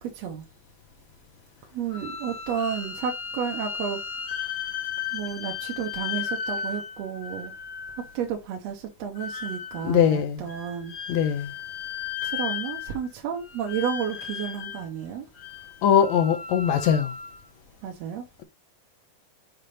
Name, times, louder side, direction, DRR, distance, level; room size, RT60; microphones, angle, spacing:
voice 1, 0.0-0.4 1.7-4.0 5.1-7.5 8.1-11.0 12.2-15.3 17.8-18.3, right 8 dB, 70° right, 2.0 m, -32 dB
sound 1, 1.9-8.1 9.2-10.0 10.5-13.1 13.3-14.9 15.4-17.4, left 7 dB, 50° left, 1.5 m, -35 dB
voice 2, 9.8-10.5 11.1-11.5 15.8-17.1, left 9 dB, 75° left, 2.0 m, -21 dB
6.8 x 4.4 x 4.1 m
omnidirectional pair, 3.3 m